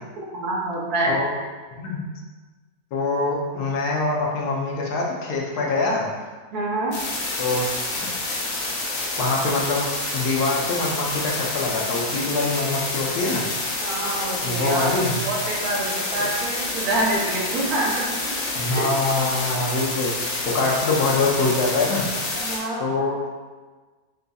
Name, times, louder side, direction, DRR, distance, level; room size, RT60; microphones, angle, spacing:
voice 1, 0.3-1.1 6.5-7.0 13.8-17.9 18.7-18.9 22.4-22.8, right 2 dB, 75° right, -3 dB, 1.3 m, -26 dB
voice 2, 2.9-6.1 7.4-7.7 9.2-9.9 10.1-13.5 14.4-15.2 18.5-22.1 22.5-23.2, left 3 dB, 90° left, -2 dB, 1.2 m, -24 dB
sound 1, 6.9-22.6, left 2 dB, 65° left, 1.1 m, -28 dB
4.3 x 3.9 x 2.3 m, 1.4 s
omnidirectional pair, 1.6 m